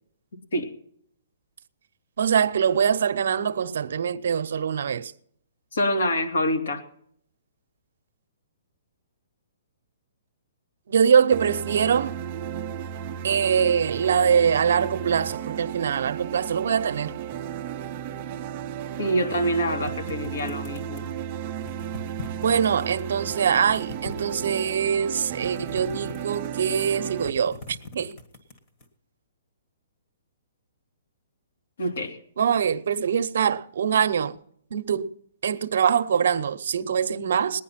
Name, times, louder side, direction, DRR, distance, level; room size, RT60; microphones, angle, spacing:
voice 1, 2.2-5.1 10.9-12.2 13.2-17.2 22.4-28.1 32.4-34.4 34.7-35.1 35.4-37.6, right 7 dB, 60° right, 0.8 m, -23 dB
voice 2, 5.7-6.8 19.0-21.0 31.8-32.2, equal, 75° left, 3.1 m, -26 dB
sound 1, 11.3-27.3, right 9 dB, 25° right, 0.6 m, -34 dB
sound 2, 19.8-21.2 21.6-23.0 23.4-24.8 25.3-26.7 27.0-28.9, left 3 dB, 25° left, 1.6 m, -41 dB
19.5 x 10.0 x 5.8 m
hypercardioid pair, 175°, 0 cm